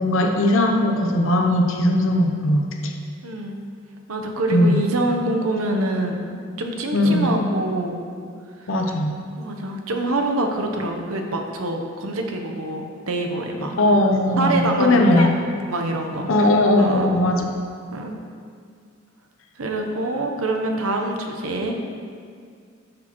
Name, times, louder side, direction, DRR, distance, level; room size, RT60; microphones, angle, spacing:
voice 1, 0.0-2.9 4.5-4.8 6.9-7.3 8.7-9.1 13.8-15.3 16.3-17.4, left 1 dB, 70° left, 2 dB, 0.8 m, -19 dB
voice 2, 3.2-3.6 4.1-6.3 6.6-8.0 9.4-13.8 14.4-15.3 15.7-16.3 16.8-17.1 17.9-18.2 19.6-21.8, right 2 dB, 90° right, 3 dB, 0.9 m, -25 dB
10.5 x 6.2 x 3.1 m, 2.2 s
head